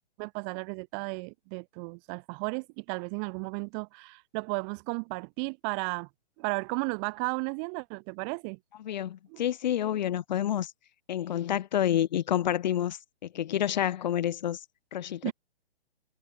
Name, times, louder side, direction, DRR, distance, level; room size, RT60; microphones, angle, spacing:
voice 1, 0.2-6.1 6.4-8.6 9.3-9.4 15.2-15.3, right 40 dB or more, 20° right, 1.5 m, -34 dB
voice 2, 8.8-10.7 11.1-14.6 14.9-15.3, left 11 dB, 40° left, 1.4 m, -29 dB
figure-of-eight pair, 140°, 32 cm